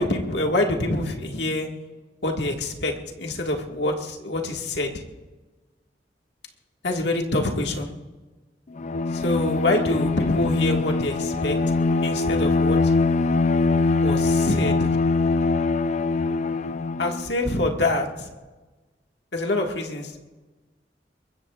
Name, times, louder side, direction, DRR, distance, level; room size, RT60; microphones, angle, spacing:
voice 1, 0.0-1.7 2.2-4.9 6.8-7.9 9.1-11.6 12.0-12.9 14.0-15.0 17.0-18.3 19.3-20.1, left 2 dB, 75° left, 1 dB, 1.8 m, -25 dB
Bowed string instrument, 8.8-17.3, left 3 dB, 40° left, 0.4 m, -23 dB
22.5 x 21.5 x 2.4 m, 1.2 s
head